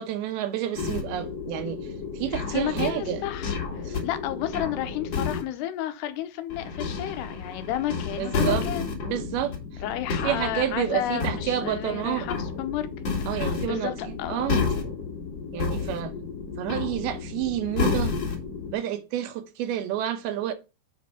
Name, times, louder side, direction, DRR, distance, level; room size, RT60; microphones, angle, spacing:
voice 1, 0.0-1.8 2.1-3.2 3.9-4.0 8.2-8.7 9.1-9.8 10.2-12.3 13.3-14.6 15.5-16.1 16.6-18.2 18.7-20.5, right 11 dB, 75° right, 2.6 m, -29 dB
sound 1, 0.7-5.4 6.5-18.7, left 5 dB, 45° left, 2.7 m, -31 dB
voice 2, 2.5-8.9 9.8-12.9 13.3-14.6, left 12 dB, 85° left, 2.9 m, -32 dB
7.6 x 5.0 x 5.6 m
omnidirectional pair, 4.7 m